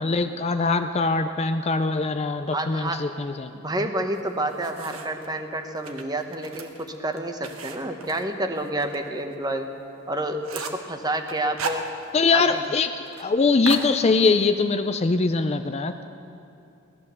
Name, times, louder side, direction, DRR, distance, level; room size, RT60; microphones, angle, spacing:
voice 1, 0.0-3.5 12.1-12.9 13.2-16.0, left 4 dB, 30° left, 8 dB, 0.4 m, -22 dB
voice 2, 2.5-3.0 3.5-9.7 10.1-11.8 12.3-12.6, right 1 dB, 20° right, 6 dB, 0.9 m, -29 dB
sound 1, 4.1-5.3 5.8-9.0 9.3-9.4 9.8-9.9 10.2-10.9 11.3-12.4 12.6-12.7 13.0-13.3 13.7-14.5, right 5 dB, 70° right, 1.2 m, -36 dB
17.5 x 12.0 x 6.8 m, 2.6 s
head